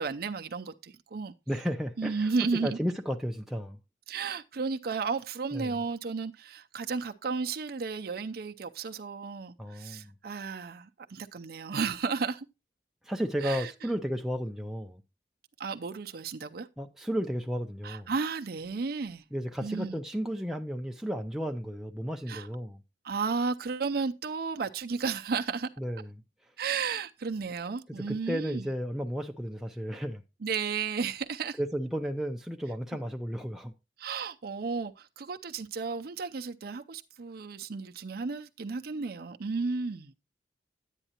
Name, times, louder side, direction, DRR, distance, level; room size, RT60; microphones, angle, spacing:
voice 1, 0.0-1.3 2.0-2.8 4.1-12.5 13.4-13.7 15.6-16.7 17.8-19.2 19.6-20.0 22.3-22.5 23.0-25.7 26.6-28.6 30.4-31.6 34.0-40.1, right 5 dB, 60° right, 0.5 m, -33 dB
voice 2, 1.5-2.3 2.6-3.8 5.5-5.8 9.6-10.1 13.0-15.0 16.8-18.1 19.3-22.8 25.8-26.1 27.9-30.2 31.6-33.7, equal, ahead, 0.5 m, -33 dB
9.9 x 9.0 x 2.9 m
head